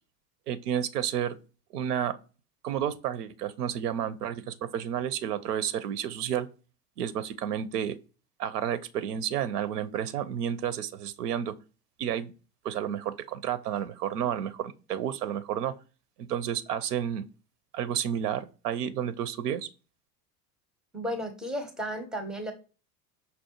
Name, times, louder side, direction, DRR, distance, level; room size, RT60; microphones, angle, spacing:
voice 1, 0.5-1.4 1.7-2.2 2.6-6.5 7.0-8.0 8.4-11.5 12.0-12.3 12.6-15.7 16.2-17.2 17.7-19.7, right 9 dB, 75° right, 0.5 m, -31 dB
voice 2, 20.9-22.5, equal, ahead, 0.5 m, -34 dB
5.3 x 2.1 x 2.7 m
hypercardioid pair, 80°, 48 cm